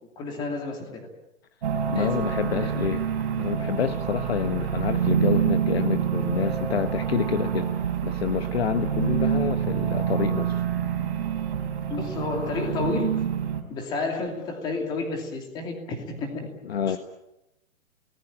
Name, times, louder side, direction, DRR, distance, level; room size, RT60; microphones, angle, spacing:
voice 1, 0.2-1.1 1.9-2.2 2.5-2.7 11.9-13.2 13.7-16.5 16.9-17.0, left 3 dB, 10° left, 3 dB, 2.6 m, -31 dB
sound 1, 1.6-13.6, right 8 dB, 45° right, 3.9 m, -27 dB
voice 2, 1.9-3.0 3.4-7.7 8.0-10.6 16.6-17.0, left 8 dB, 50° left, 10 dB, 1.2 m, -28 dB
28.5 x 19.5 x 8.8 m, 0.91 s
hypercardioid pair, 180°, 40 cm